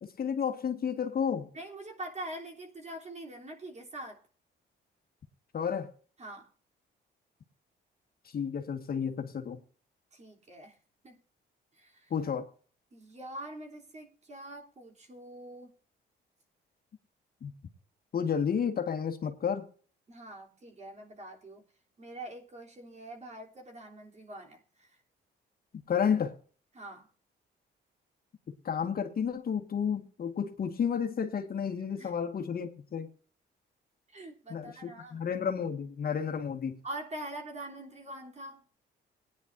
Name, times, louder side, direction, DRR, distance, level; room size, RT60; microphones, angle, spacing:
voice 1, 0.0-1.5 5.5-5.9 8.2-9.6 12.1-12.5 17.4-17.5 18.1-19.7 25.9-26.4 28.6-33.1 34.5-36.8, left 7 dB, 50° left, 1.6 m, -31 dB
voice 2, 1.5-4.2 6.2-6.5 10.1-10.7 11.0-11.2 11.7-12.1 12.9-15.7 20.1-21.6 22.0-25.0 26.7-27.1 32.0-32.1 34.1-35.2 36.8-38.6, right 1 dB, 35° right, 3.3 m, -44 dB
19.0 x 9.9 x 2.6 m
cardioid pair, 90°, 20 cm